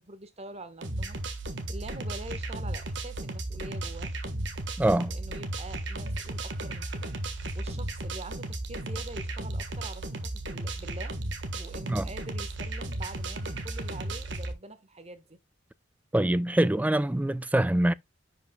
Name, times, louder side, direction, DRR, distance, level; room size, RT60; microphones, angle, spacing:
voice 1, 0.0-4.1 5.1-11.2 11.5-15.4, right 2 dB, 35° right, 1.3 m, -45 dB
sound 1, 0.8-14.5, right 2 dB, 70° right, 1.4 m, -35 dB
voice 2, 4.8-5.1 11.9-12.1 16.1-17.9, right 1 dB, 10° right, 0.3 m, -24 dB
10.5 x 5.3 x 2.2 m
head